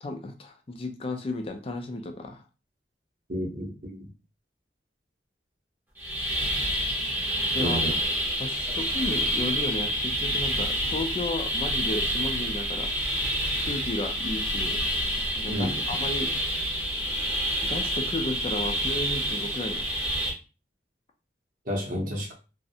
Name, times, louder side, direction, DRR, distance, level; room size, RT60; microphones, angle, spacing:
voice 1, 0.0-2.4 7.5-8.0 8.4-12.9 13.6-14.8 15.3-16.3 17.6-19.9, left 2 dB, 30° left, 0.3 m, -33 dB
voice 2, 3.3-4.0 7.6-8.0 15.5-15.8 21.7-22.3, equal, 50° right, 0.7 m, -30 dB
sound 1, 6.0-20.3, equal, 10° right, 0.6 m, -28 dB
2.5 x 2.0 x 2.7 m
head